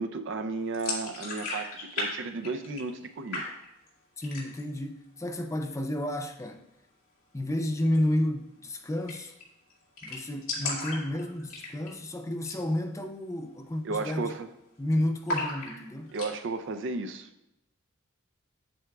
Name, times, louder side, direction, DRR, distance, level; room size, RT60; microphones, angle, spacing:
voice 1, 0.0-3.5 10.6-10.7 13.8-14.5 16.1-17.3, right 3 dB, 60° right, 9 dB, 0.5 m, -34 dB
sound 1, 0.7-2.1 2.3-3.1 3.3-3.9 4.2-4.7 5.1-5.2 5.5-6.2 7.8-8.0 8.3-8.4 8.6-8.7 9.1-9.4 9.7-9.8 10.0-12.0 12.4-12.7 13.0-13.1 13.6-13.9 14.2-14.8 15.3-16.3, left 2 dB, 70° left, 2.1 m, -35 dB
voice 2, 4.2-6.6 7.3-9.3 10.0-14.4 14.8-16.1, left 1 dB, 15° left, 5 dB, 0.4 m, -31 dB
7.7 x 7.7 x 2.3 m, 0.87 s
head